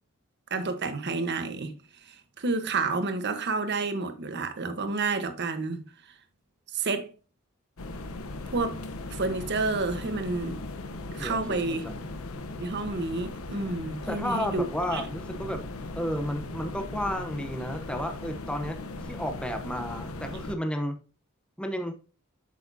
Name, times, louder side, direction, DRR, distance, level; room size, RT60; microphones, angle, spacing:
voice 1, 0.5-5.8 6.7-7.1 8.5-8.8 9.1-10.6 11.1-11.8 12.6-15.0, right 3 dB, 55° right, 1.0 m, -30 dB
sound 1, 7.8-20.5, left 2 dB, 75° left, 0.9 m, -38 dB
voice 2, 11.2-12.1 14.1-15.6 15.9-21.0 21.6-21.9, equal, 5° left, 0.7 m, -32 dB
8.3 x 6.7 x 2.7 m
head